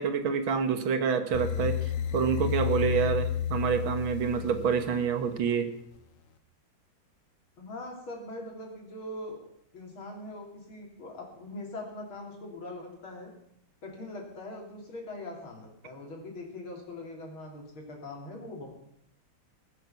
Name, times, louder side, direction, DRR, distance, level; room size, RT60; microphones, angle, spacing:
voice 1, 0.0-1.8 2.1-5.7, right 6 dB, 75° right, 9 dB, 2.1 m, -27 dB
sound 1, 1.3-5.4, left 10 dB, 55° left, 1.0 m, -32 dB
voice 2, 7.6-9.5 9.7-13.3 13.8-18.7, left 2 dB, 85° left, 1 dB, 4.2 m, -42 dB
20.5 x 9.3 x 5.9 m, 0.75 s
omnidirectional pair, 2.2 m